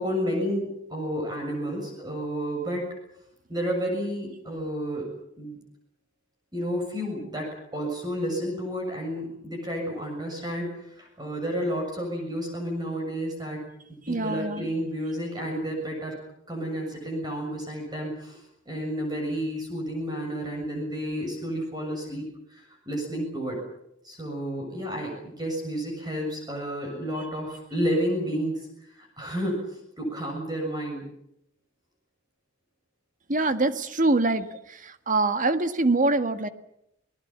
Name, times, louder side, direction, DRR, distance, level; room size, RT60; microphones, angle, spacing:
voice 1, 0.0-2.9 3.5-5.1 5.4-5.6 6.5-13.6 14.1-16.1 16.5-23.6 24.0-31.1, equal, 20° right, 1 dB, 6.9 m, -31 dB
voice 2, 14.1-14.7 33.3-36.5, right 2 dB, 40° right, 10 dB, 1.6 m, -24 dB
28.5 x 19.5 x 7.3 m, 0.79 s
head